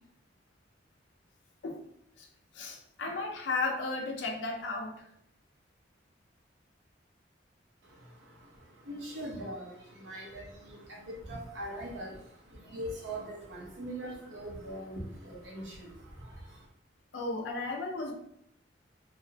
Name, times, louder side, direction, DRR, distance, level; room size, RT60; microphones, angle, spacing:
voice 1, 2.5-5.1 17.1-18.1, left 3 dB, 80° left, 2 dB, 0.5 m, -34 dB
voice 2, 7.8-16.7, right 1 dB, 75° right, -2 dB, 0.7 m, -42 dB
2.4 x 2.0 x 2.7 m, 0.74 s
head